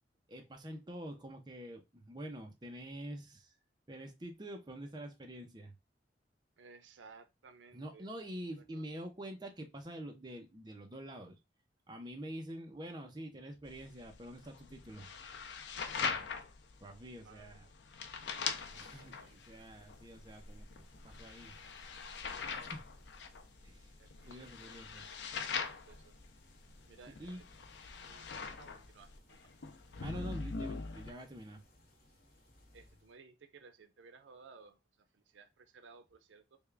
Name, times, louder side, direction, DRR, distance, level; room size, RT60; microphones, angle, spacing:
voice 1, 0.3-3.5 3.9-5.7 7.7-11.4 11.9-15.1 16.0-16.3 16.8-17.7 18.7-21.5 22.5-22.8 23.6-23.9 24.2-25.1 27.2-27.4 30.0-31.6, right 1 dB, 25° right, 0.6 m, -46 dB
voice 2, 6.6-8.1 8.5-9.0 17.2-17.7 18.4-19.4 24.0-25.1 25.6-26.2 26.9-27.3 28.0-29.4 32.7-34.8 35.1-36.6, right 4 dB, 90° right, 0.5 m, -59 dB
sound 1, 13.6-31.1, left 5 dB, 70° left, 0.5 m, -42 dB
sound 2, 18.0-33.2, equal, 55° left, 0.9 m, -62 dB
3.5 x 2.3 x 3.3 m
head